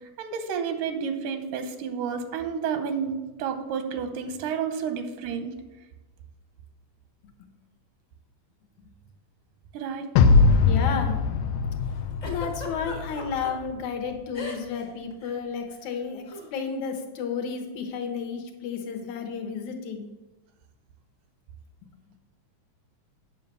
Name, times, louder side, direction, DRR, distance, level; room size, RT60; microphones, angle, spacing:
voice 1, 0.2-5.5 9.7-10.1, right 6 dB, 90° right, 8 dB, 2.4 m, -30 dB
sound 1, 10.2-13.4, left 4 dB, 90° left, 2.1 m, -21 dB
voice 2, 10.6-11.2 11.9-16.3 16.5-20.1, left 6 dB, 70° left, 5 dB, 2.2 m, -32 dB
Giggle, 12.2-13.5 14.3-14.9 15.1-15.3 16.3-16.5, left 2 dB, 35° left, 1.1 m, -37 dB
8.9 x 5.6 x 6.7 m, 1.1 s
omnidirectional pair, 3.6 m